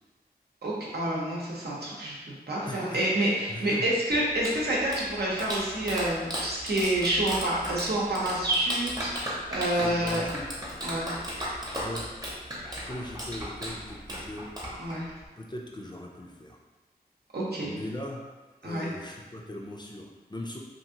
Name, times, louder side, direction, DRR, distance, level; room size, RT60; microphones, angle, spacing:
voice 1, 0.6-10.2 10.8-11.1 14.8-15.1 17.3-17.7 18.6-18.9, right 1 dB, 75° right, -5 dB, 0.8 m, -28 dB
voice 2, 2.6-3.9 9.7-10.5 11.8-12.1 12.8-14.5 15.4-16.6 17.6-18.2 18.6-20.6, left 1 dB, 25° left, -1 dB, 0.4 m, -39 dB
Clapping, 4.1-15.3, equal, 20° right, 0.8 m, -36 dB
2.8 x 2.5 x 2.7 m, 1.2 s
wide cardioid pair, 60°, 17 cm